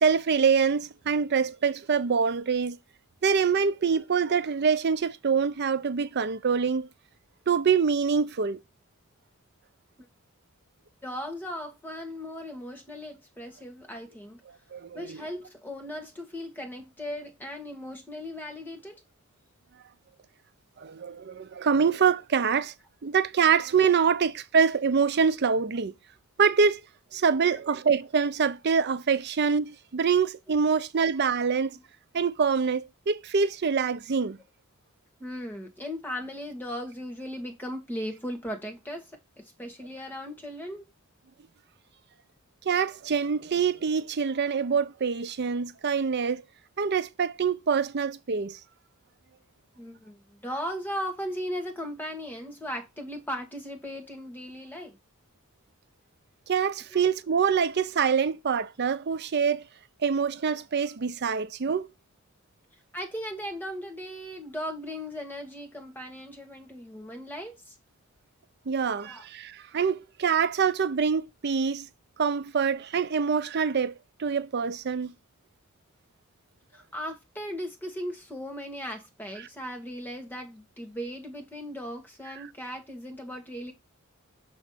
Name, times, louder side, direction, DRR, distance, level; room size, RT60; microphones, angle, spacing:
voice 1, 0.0-2.8 3.2-6.9 7.5-8.6 14.7-15.2 20.8-22.7 23.0-25.9 26.4-26.8 27.1-31.8 32.1-34.4 42.7-46.4 46.8-48.6 56.5-59.6 60.0-61.9 68.7-71.9 72.2-73.9 74.2-75.1, right 6 dB, 50° right, 0.5 m, -25 dB
voice 2, 11.0-14.4 14.9-19.0 27.5-27.6 31.0-31.1 31.6-31.8 35.2-39.1 39.4-40.8 49.7-55.0 56.9-57.0 62.9-67.8 69.0-69.2 76.7-83.7, equal, 10° left, 1.5 m, -37 dB
7.0 x 3.1 x 5.6 m
head